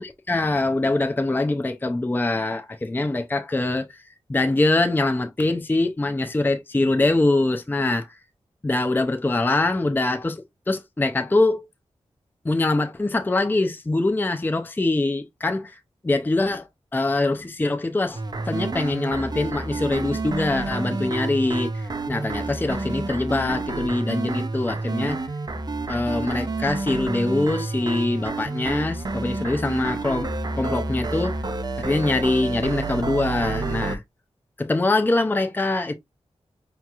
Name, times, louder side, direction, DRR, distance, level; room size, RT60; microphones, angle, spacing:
voice 1, 0.0-4.0 4.3-8.1 8.6-11.6 12.4-15.8 16.0-18.2 18.5-25.2 25.9-31.5 31.8-34.0 34.6-35.9, left 2 dB, 20° left, 0.5 m, -23 dB
sound 1, 18.1-34.0, right 3 dB, 40° right, 0.6 m, -29 dB
5.6 x 2.9 x 2.4 m
wide cardioid pair, 75°, 11 cm